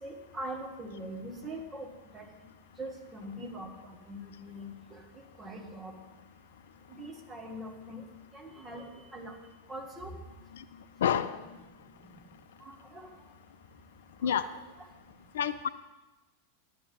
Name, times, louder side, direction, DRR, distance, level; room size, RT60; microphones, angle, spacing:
voice 1, 0.0-2.2 2.8-5.0 5.4-5.9 7.0-8.0 8.3-9.3 9.7-10.2 12.9-13.1 14.3-14.4, right 1 dB, 20° right, 1 dB, 1.6 m, -42 dB
voice 2, 11.0-11.4 14.2-14.5 15.3-15.7, left 8 dB, 60° left, 14 dB, 0.3 m, -28 dB
11.0 x 9.5 x 4.0 m, 1.1 s
figure-of-eight pair, 90°, 0 cm